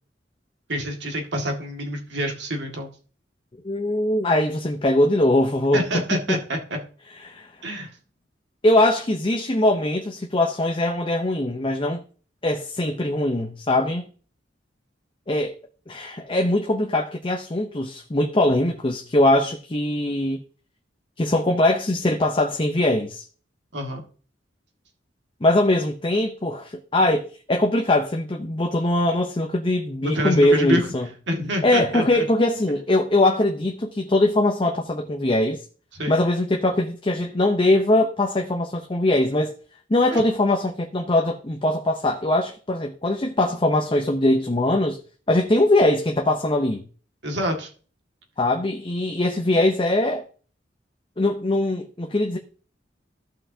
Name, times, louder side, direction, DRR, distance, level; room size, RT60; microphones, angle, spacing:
voice 1, 0.7-2.9 5.7-6.8 7.6-7.9 23.7-24.0 30.0-30.9 31.3-32.3 35.9-36.2 40.1-40.2 47.2-47.7, equal, 70° right, 1.9 m, -27 dB
voice 2, 3.6-6.4 7.2-7.5 8.6-12.0 12.4-14.1 15.3-15.5 15.9-20.4 21.2-23.2 25.4-31.1 31.6-35.6 36.1-39.5 39.9-45.0 45.3-46.8 48.4-50.2 51.2-52.4, left 1 dB, 30° left, 0.7 m, -21 dB
15.0 x 5.6 x 2.8 m
head